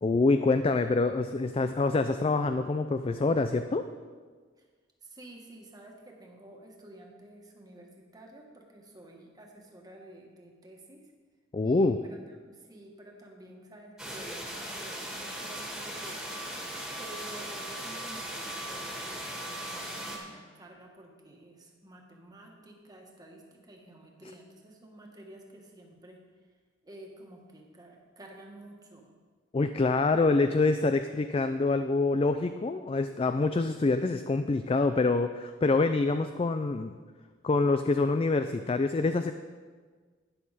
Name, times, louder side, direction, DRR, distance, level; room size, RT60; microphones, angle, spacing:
voice 1, 0.0-3.9 11.5-12.0 29.5-36.9 37.4-39.3, left 3 dB, 30° left, 9 dB, 0.3 m, -26 dB
voice 2, 5.0-11.0 11.6-12.2 12.5-16.5 17.0-26.2 26.8-29.1, right 1 dB, 20° right, 0 dB, 1.6 m, -51 dB
sound 1, 14.0-20.2, right 1 dB, ahead, 2.0 m, -38 dB
12.0 x 10.0 x 4.2 m, 1.5 s
head